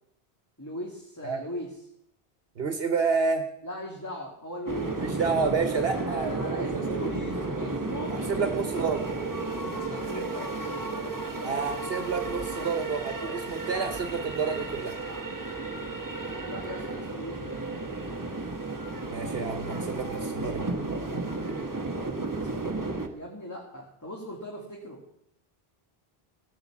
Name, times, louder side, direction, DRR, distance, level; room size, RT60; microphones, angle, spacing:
voice 1, 0.6-1.7 3.6-5.0 5.9-8.9 9.6-10.5 16.5-17.7 23.1-25.0, left 1 dB, 15° left, -2 dB, 2.5 m, -39 dB
voice 2, 2.6-3.5 5.0-7.3 8.1-9.1 11.4-14.9 19.1-20.7, right 5 dB, 70° right, 7 dB, 1.2 m, -29 dB
sound 1, 4.7-23.1, right 3 dB, 20° right, 1.3 m, -33 dB
17.0 x 8.7 x 7.2 m, 0.76 s
omnidirectional pair, 1.0 m